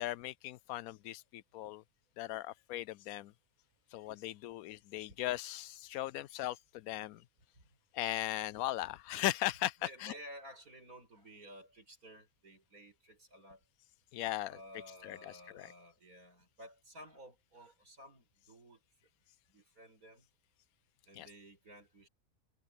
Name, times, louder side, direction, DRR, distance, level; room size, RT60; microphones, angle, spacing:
voice 1, 0.0-1.8 2.2-3.3 3.9-7.2 7.9-10.1 14.1-14.6 15.0-15.7 21.2-21.3, left 15 dB, 80° left, 1.0 m, -38 dB
voice 2, 9.8-13.6 14.5-18.8 19.5-20.3 21.1-22.1, equal, 85° right, 8.3 m, -54 dB
omnidirectional pair, 1.5 m